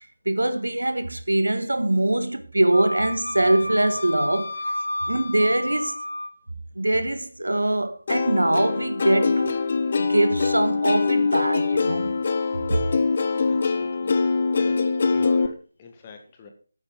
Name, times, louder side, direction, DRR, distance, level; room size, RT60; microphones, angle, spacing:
voice 1, 0.2-4.5 5.1-6.0 6.8-9.6 10.0-12.2 12.7-13.0, right 1 dB, 75° right, 1.4 m, -23 dB
Wind instrument woodwind instrument, 2.7-6.4, left 1 dB, 80° left, 1.4 m, -31 dB
Plucked string instrument, 8.1-15.5, left 4 dB, 40° left, 1.0 m, -23 dB
voice 2, 13.5-16.5, left 5 dB, 25° left, 1.8 m, -44 dB
10.5 x 8.4 x 4.6 m
figure-of-eight pair, 155°, 0 cm